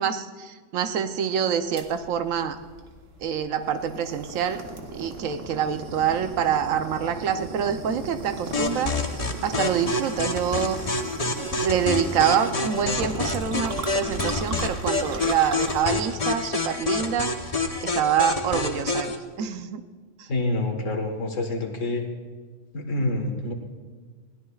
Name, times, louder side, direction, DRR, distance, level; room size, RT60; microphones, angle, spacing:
voice 1, 0.0-2.6 3.2-4.6 4.9-10.8 11.4-19.8 20.2-20.3, right 8 dB, 90° right, 9 dB, 1.1 m, -26 dB
sound 1, 1.8-18.0, right 3 dB, 75° right, 1.6 m, -38 dB
sound 2, 8.5-19.2, left 3 dB, 35° left, 0.8 m, -28 dB
voice 2, 20.3-22.0 22.7-23.5, left 2 dB, 75° left, 3 dB, 1.8 m, -27 dB
21.0 x 16.5 x 2.4 m, 1.5 s
omnidirectional pair, 1.3 m